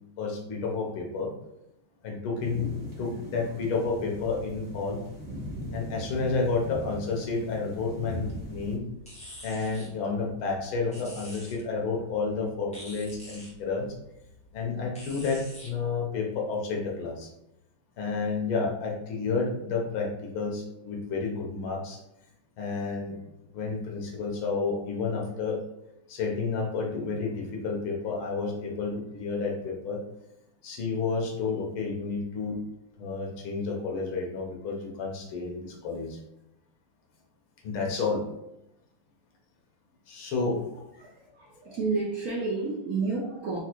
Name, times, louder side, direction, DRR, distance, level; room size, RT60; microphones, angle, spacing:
voice 1, 0.2-1.3 2.0-2.7 3.0-5.0 5.7-8.9 9.4-13.9 14.5-17.3 18.0-22.0 22.6-23.2 23.5-25.6 26.1-30.0 30.6-32.6 33.0-36.2 37.6-38.2 40.1-40.6, left 4 dB, 85° left, 0 dB, 1.8 m, -30 dB
sound 1, 2.4-8.8, equal, 10° right, 1.1 m, -40 dB
sound 2, 8.2-15.7, left 1 dB, 5° left, 0.8 m, -48 dB
voice 2, 41.0-43.6, right 4 dB, 65° right, -3 dB, 0.9 m, -30 dB
4.6 x 2.5 x 4.5 m, 0.86 s
omnidirectional pair, 2.2 m